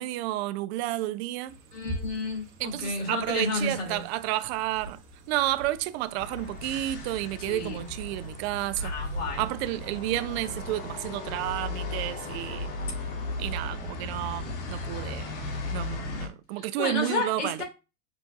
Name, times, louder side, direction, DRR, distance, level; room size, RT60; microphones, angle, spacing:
voice 1, 0.0-1.5 2.6-5.0 5.3-8.9 9.4-12.7 13.4-15.3 15.7-17.6, right 15 dB, 50° right, 0.4 m, -31 dB
sound 1, 1.5-10.1, right 1 dB, 70° right, 1.4 m, -42 dB
voice 2, 1.7-4.0 7.4-7.9 8.8-9.5 13.7-13.9 16.6-17.6, left 3 dB, 85° left, 2.3 m, -32 dB
sound 2, 6.2-16.3, left 2 dB, 50° left, 1.6 m, -36 dB
6.5 x 2.5 x 2.4 m
hypercardioid pair, 125°, 44 cm